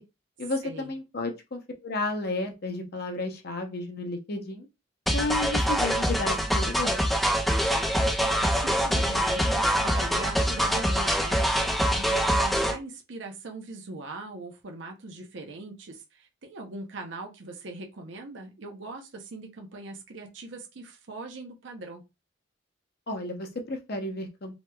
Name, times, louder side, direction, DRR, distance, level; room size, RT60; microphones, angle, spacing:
voice 1, 0.4-4.7 5.1-7.0 23.1-24.5, left 2 dB, 50° left, 0.7 m, -32 dB
sound 1, 5.1-12.8, equal, ahead, 0.3 m, -25 dB
voice 2, 8.0-22.0, right 3 dB, 65° right, 0.6 m, -40 dB
3.1 x 3.0 x 2.2 m
head